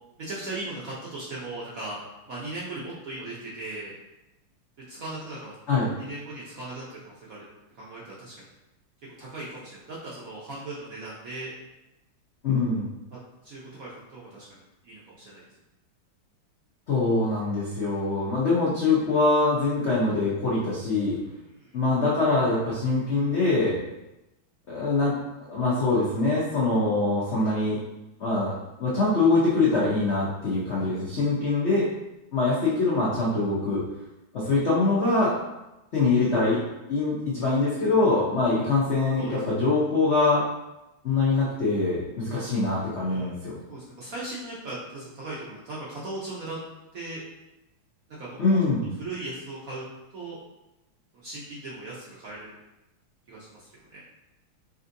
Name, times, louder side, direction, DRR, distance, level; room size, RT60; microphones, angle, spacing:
voice 1, 0.2-2.0 2.3-3.9 4.9-5.6 6.0-7.4 7.7-8.5 9.2-11.5 13.1-15.4 17.8-18.0 21.4-21.8 30.8-31.0 39.2-39.4 43.0-43.4 43.7-46.6 46.9-47.2 48.2-48.6 49.0-49.8 50.1-50.4 51.1-52.6 53.3-54.0, right 2 dB, 65° right, -6 dB, 0.8 m, -38 dB
voice 2, 12.4-12.9 16.9-21.2 21.7-23.8 24.7-27.8 28.2-31.9 32.3-33.8 34.3-35.4 35.9-36.6 36.9-40.4 41.0-43.6 48.4-48.9, left 3 dB, 85° left, -7 dB, 0.6 m, -24 dB
5.3 x 2.6 x 2.6 m, 0.97 s
omnidirectional pair, 2.3 m